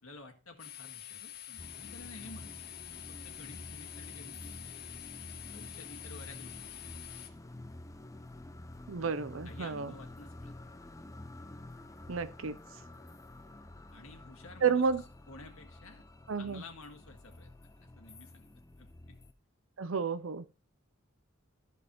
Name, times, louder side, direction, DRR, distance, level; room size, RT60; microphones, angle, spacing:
voice 1, 0.0-2.5 2.9-4.9 5.5-6.7 9.0-10.5 13.9-14.8 15.3-16.0 16.4-19.2, left 2 dB, 85° left, 1.8 m, -52 dB
sound 1, 0.6-7.3, left 14 dB, 50° left, 1.8 m, -47 dB
sound 2, 1.6-19.3, left 1 dB, 15° left, 0.5 m, -50 dB
voice 2, 8.9-9.9 12.1-12.6 14.6-15.0 16.3-16.6 19.8-20.5, right 5 dB, 70° right, 0.6 m, -31 dB
13.0 x 5.3 x 3.0 m
head